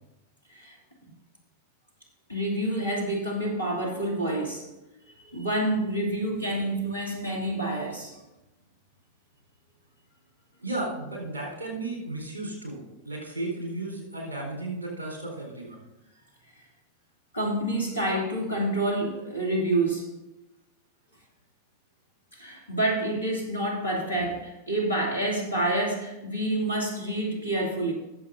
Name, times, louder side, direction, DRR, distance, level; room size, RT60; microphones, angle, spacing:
voice 1, 2.3-4.7 5.3-8.2 17.3-20.1 22.4-27.9, right 1 dB, 80° left, -1 dB, 2.5 m, -28 dB
voice 2, 10.6-15.8, right 2 dB, 75° right, -1 dB, 4.1 m, -34 dB
19.0 x 7.4 x 2.7 m, 0.97 s
figure-of-eight pair, 90°, 0 cm